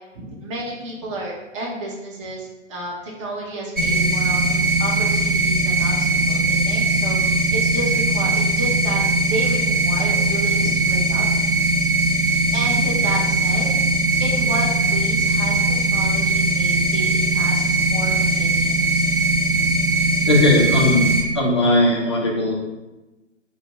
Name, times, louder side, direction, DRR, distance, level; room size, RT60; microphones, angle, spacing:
voice 1, 0.1-11.2 12.2-18.8, right 1 dB, 25° right, -3 dB, 0.7 m, -32 dB
sound 1, 3.8-21.2, right 2 dB, 40° right, 1.1 m, -20 dB
voice 2, 20.3-21.1 21.3-22.5, left 1 dB, 25° left, -4 dB, 0.3 m, -17 dB
4.2 x 2.1 x 3.4 m, 1.1 s
figure-of-eight pair, 130°, 37 cm